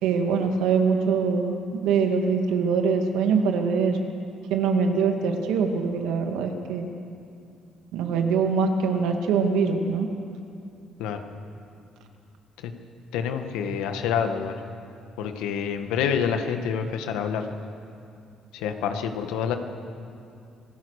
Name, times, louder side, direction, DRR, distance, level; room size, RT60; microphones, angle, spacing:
voice 1, 0.0-4.0 4.5-6.8 7.9-10.1, right 5 dB, 85° right, 4 dB, 2.2 m, -23 dB
voice 2, 13.1-14.5 15.2-17.4 18.5-19.6, left 7 dB, 90° left, 6 dB, 1.7 m, -27 dB
26.5 x 15.5 x 6.6 m, 2.5 s
cardioid pair, 90°, 0 cm